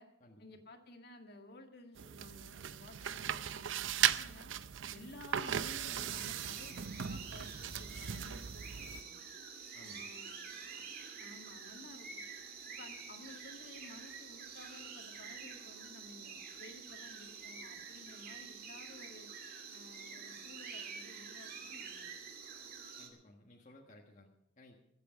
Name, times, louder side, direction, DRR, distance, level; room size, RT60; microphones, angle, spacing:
voice 1, 0.4-4.5 4.9-9.2 9.8-10.5 11.2-12.3 12.8-19.3 19.7-22.1, left 2 dB, 55° left, 4 dB, 1.9 m, -55 dB
sound 1, 2.0-9.0, right 9 dB, 75° right, 0.6 m, -37 dB
sound 2, 5.9-23.1, right 5 dB, 50° right, 2.3 m, -48 dB
voice 2, 9.7-10.1 23.0-24.8, left 1 dB, 40° left, -1 dB, 1.5 m, -59 dB
22.0 x 8.3 x 5.8 m, 0.79 s
head